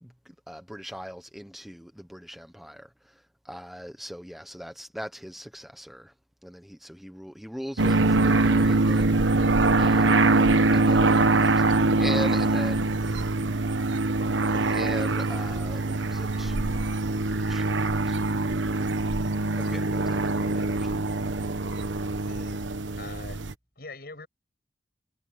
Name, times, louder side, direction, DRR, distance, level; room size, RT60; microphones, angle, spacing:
voice 1, 0.0-6.1 6.4-10.5 10.7-13.3 14.5-18.6 19.6-21.0, equal, ahead, 1.0 m, -40 dB
sound 1, 7.8-23.5, right 2 dB, 90° right, 1.2 m, -23 dB
voice 2, 22.3-22.6 23.0-23.4 23.8-24.3, left 2 dB, 55° left, 7.8 m, -42 dB
head